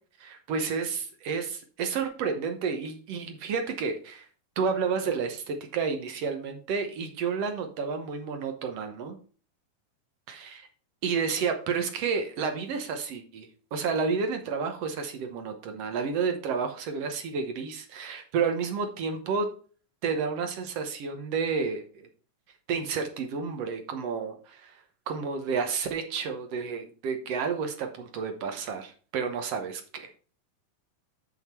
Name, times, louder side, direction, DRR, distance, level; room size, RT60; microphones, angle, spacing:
voice 1, 0.2-4.3 4.6-9.2 10.3-10.7 11.0-19.5 20.0-22.1 22.7-30.1, right 5 dB, 65° right, 6 dB, 1.6 m, -31 dB
7.5 x 6.0 x 4.3 m, 0.40 s
omnidirectional pair, 4.0 m